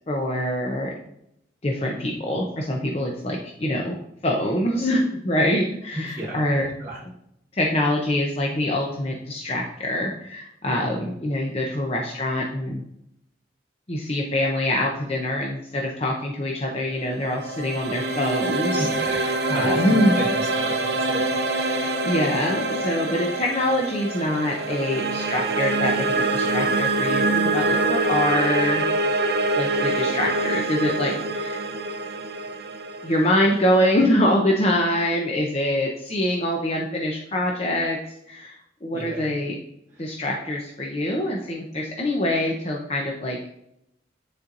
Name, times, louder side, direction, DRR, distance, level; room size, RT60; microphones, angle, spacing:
voice 1, 0.1-0.9 1.6-4.0 4.2-6.7 7.5-12.8 13.9-20.2 21.7-28.8 29.5-31.6 33.0-38.0 38.3-38.5 38.8-39.6 40.0-43.4, left 1 dB, 35° left, 0 dB, 0.7 m, -24 dB
voice 2, 6.0-7.0 10.7-11.0 18.8-21.2 38.9-39.3, right 1 dB, 15° right, -6 dB, 1.2 m, -34 dB
sound 1, 17.1-34.2, right 2 dB, 60° right, 0.7 m, -25 dB
9.6 x 4.4 x 2.5 m, 0.78 s
head